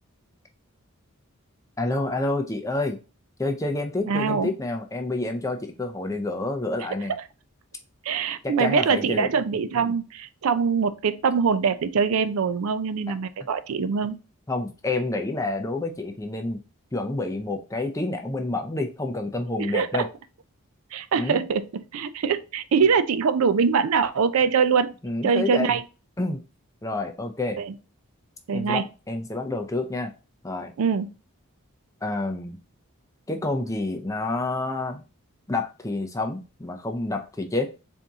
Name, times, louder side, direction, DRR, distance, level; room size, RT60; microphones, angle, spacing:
voice 1, 1.8-3.0 3.4-7.1 8.4-9.3 14.5-16.6 16.9-20.1 21.2-21.4 25.0-25.7 26.2-26.4 26.8-27.6 28.5-30.1 30.4-30.7 32.0-32.6 33.3-35.0 35.5-37.7, left 2 dB, 15° left, 0.4 m, -28 dB
voice 2, 4.1-4.5 7.1-7.2 8.0-14.1 19.5-20.1 20.9-24.9 25.2-25.8 27.6-27.8 28.5-28.8 30.8-31.1, right 6 dB, 75° right, 0.4 m, -23 dB
4.1 x 2.7 x 3.5 m
head